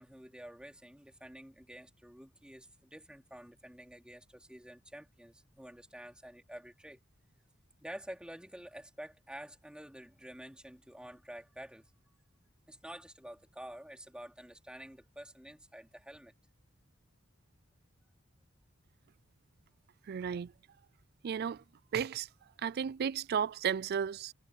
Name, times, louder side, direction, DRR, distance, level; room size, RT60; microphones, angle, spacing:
voice 1, 0.0-7.0 7.8-11.9 12.7-16.3, right 1 dB, 5° right, 3.3 m, -49 dB
voice 2, 20.1-20.5 21.2-21.6 21.9-22.3 22.6-24.3, right 7 dB, 50° right, 0.3 m, -33 dB
head